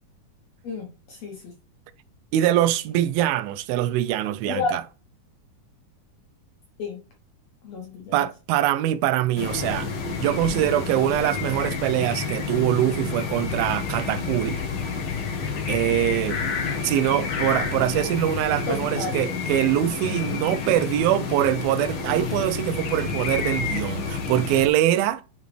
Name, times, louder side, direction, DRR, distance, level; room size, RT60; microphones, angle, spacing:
voice 1, 0.6-1.5 4.5-4.7 6.8-7.0 7.6-8.3 18.7-19.2, left 3 dB, 65° left, 1.7 m, -31 dB
voice 2, 2.3-4.8 8.1-9.9 10.2-14.6 15.7-16.4 16.8-25.2, right 13 dB, 90° right, 2.4 m, -23 dB
sound 1, 9.4-24.7, left 5 dB, 90° left, 1.1 m, -29 dB
10.0 x 4.1 x 3.2 m
omnidirectional pair, 4.2 m